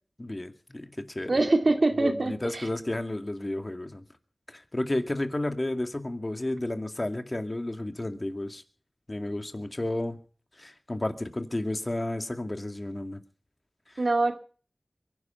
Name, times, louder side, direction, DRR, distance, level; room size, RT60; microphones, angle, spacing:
voice 1, 0.2-1.4 2.0-4.0 4.5-8.6 9.1-10.2 10.6-13.2 13.9-14.0, left 1 dB, 35° left, 7 dB, 2.1 m, -32 dB
voice 2, 1.3-2.6 14.0-14.3, right 2 dB, 60° right, 6 dB, 2.4 m, -24 dB
23.0 x 10.5 x 5.7 m, 0.42 s
cardioid pair, 40°, 0 cm